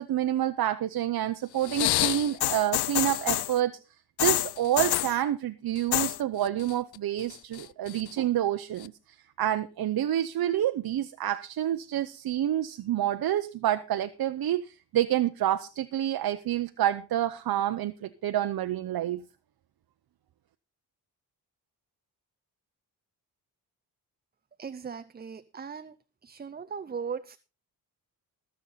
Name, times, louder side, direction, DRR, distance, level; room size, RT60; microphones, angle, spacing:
voice 1, 0.0-3.8 4.2-19.2, right 12 dB, 65° right, 0.8 m, -28 dB
sound 1, 1.6-3.6 4.2-5.2 5.8-6.2 6.4-7.0 7.3-8.1 8.8-8.9, left 15 dB, 80° left, 0.5 m, -27 dB
voice 2, 24.6-25.9 26.2-27.4, right 6 dB, 25° right, 0.5 m, -38 dB
20.5 x 7.2 x 4.0 m
wide cardioid pair, 120°, 39 cm